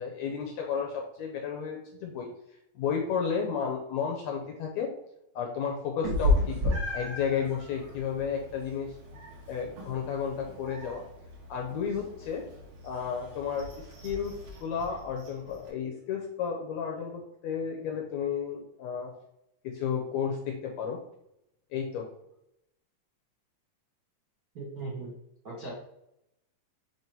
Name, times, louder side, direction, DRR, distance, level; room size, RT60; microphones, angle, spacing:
voice 1, 0.0-2.3 2.7-4.9 5.3-9.0 9.5-11.0 11.5-12.4 12.8-19.1 19.6-21.0 21.7-22.1, left 7 dB, 75° left, 1 dB, 1.6 m, -32 dB
Meow, 6.0-15.7, left 1 dB, 55° right, 2.1 m, -34 dB
voice 2, 24.5-25.1 25.4-25.7, right 3 dB, 80° right, -5 dB, 0.8 m, -38 dB
7.5 x 2.9 x 4.5 m, 0.81 s
omnidirectional pair, 3.9 m